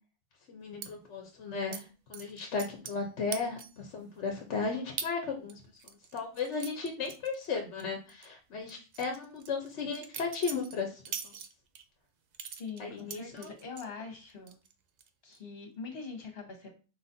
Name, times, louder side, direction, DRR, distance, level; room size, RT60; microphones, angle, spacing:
voice 1, 0.5-5.6 6.1-11.0 12.8-13.5, left 4 dB, 70° left, 2 dB, 1.1 m, -35 dB
sound 1, 0.8-0.9 1.7-1.8 2.1-3.0 3.3-3.8 4.3-4.4 5.0-5.1 5.5-7.8 8.1-8.3 8.7-11.8 12.3-13.9 14.3-14.7 15.0-15.4, right 6 dB, 55° right, 0.5 m, -42 dB
voice 2, 12.6-14.6 15.2-16.7, left 5 dB, 55° left, 2 dB, 1.4 m, -43 dB
4.9 x 4.0 x 2.6 m, 0.34 s
omnidirectional pair, 1.2 m